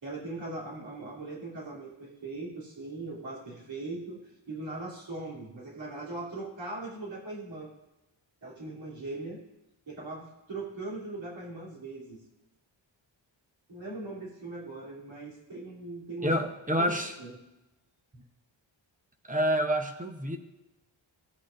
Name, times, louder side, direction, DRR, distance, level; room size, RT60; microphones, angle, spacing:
voice 1, 0.0-7.7 8.4-9.4 9.9-12.2 13.7-16.3 16.8-16.9 17.2-17.3, right 2 dB, 70° right, -6 dB, 3.2 m, -40 dB
voice 2, 16.2-17.2 18.1-18.2 19.3-20.4, equal, 15° right, 5 dB, 0.8 m, -28 dB
16.0 x 8.5 x 2.5 m, 0.98 s
wide cardioid pair, 175°, 48 cm